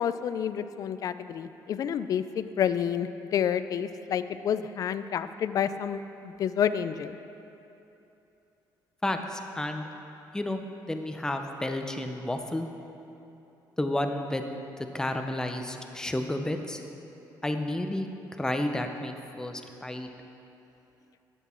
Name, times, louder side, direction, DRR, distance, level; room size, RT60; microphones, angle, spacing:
voice 1, 0.0-7.2, left 8 dB, 50° left, 12 dB, 0.4 m, -29 dB
voice 2, 9.0-9.9 10.3-10.6 10.9-12.7 13.8-14.4 14.8-16.8 17.4-18.1 18.4-20.1, left 1 dB, 10° left, 5 dB, 0.6 m, -31 dB
11.0 x 8.2 x 4.3 m, 2.9 s
cardioid pair, 125°, 8 cm